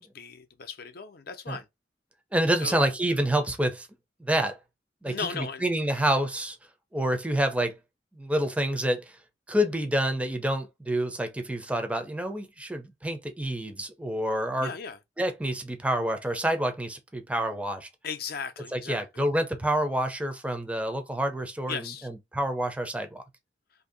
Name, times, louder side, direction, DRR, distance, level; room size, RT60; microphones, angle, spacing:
voice 1, 0.0-1.7 2.6-2.9 5.0-5.6 14.6-15.0 18.0-19.0 21.7-22.1, left 5 dB, 55° left, 0.6 m, -37 dB
voice 2, 2.3-3.9 4.2-4.6 5.0-6.6 6.9-7.8 8.1-9.2 9.5-14.7 15.2-17.9 18.7-23.2, right 1 dB, 5° right, 0.5 m, -28 dB
2.8 x 2.7 x 3.8 m
head